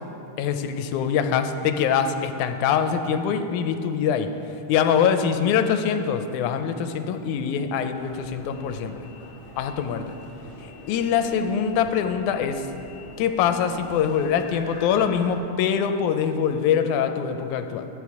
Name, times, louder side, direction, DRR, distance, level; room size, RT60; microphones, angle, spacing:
voice 1, 0.4-4.3 4.7-9.1 9.6-10.1 10.6-12.7 13.2-17.9, left 7 dB, 85° left, 8 dB, 2.0 m, -24 dB
sound 1, 8.0-15.4, left 1 dB, 60° left, 0.5 m, -43 dB
12.5 x 8.6 x 4.7 m, 2.9 s
omnidirectional pair, 3.5 m